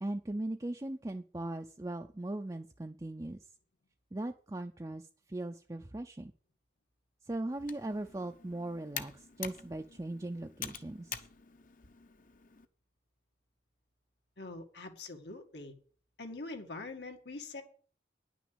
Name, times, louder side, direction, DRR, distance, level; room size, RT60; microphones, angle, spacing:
voice 1, 0.0-3.4 4.1-6.3 7.2-11.2, right 1 dB, 20° right, 4 dB, 0.5 m, -39 dB
Computer keyboard, 7.5-12.7, left 9 dB, 50° left, 0.8 m, -46 dB
voice 2, 14.4-15.7 16.2-17.6, left 3 dB, 85° left, 4 dB, 2.0 m, -44 dB
10.5 x 6.2 x 7.9 m, 0.42 s
head